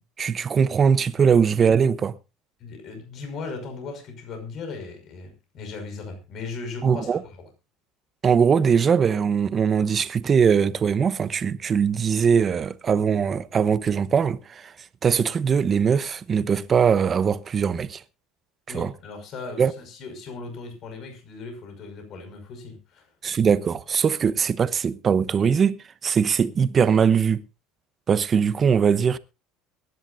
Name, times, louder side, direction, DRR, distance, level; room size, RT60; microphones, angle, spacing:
voice 1, 0.2-2.1 6.8-7.2 8.2-14.7 15.0-18.0 18.7-18.9 19.6-19.7 23.2-25.8 26.0-27.4 28.1-29.2, right 6 dB, 30° right, 0.9 m, -21 dB
voice 2, 2.6-7.4 18.7-23.1, left 4 dB, 50° left, 5.6 m, -37 dB
23.0 x 10.5 x 2.6 m
cardioid pair, 125°, 0 cm